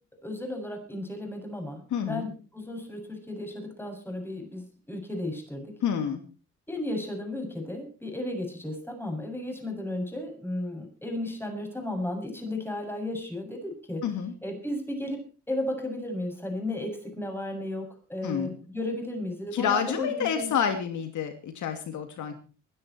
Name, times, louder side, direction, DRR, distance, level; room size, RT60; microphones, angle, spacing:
voice 1, 0.2-5.7 6.7-14.0 14.4-15.2 15.5-20.5, left 1 dB, 5° left, 3 dB, 7.2 m, -34 dB
voice 2, 1.9-2.3 5.8-6.2 14.0-14.3 18.2-18.6 19.5-22.3, left 7 dB, 75° left, 6 dB, 2.7 m, -28 dB
23.5 x 10.5 x 4.4 m, 0.35 s
cardioid pair, 90°, 30 cm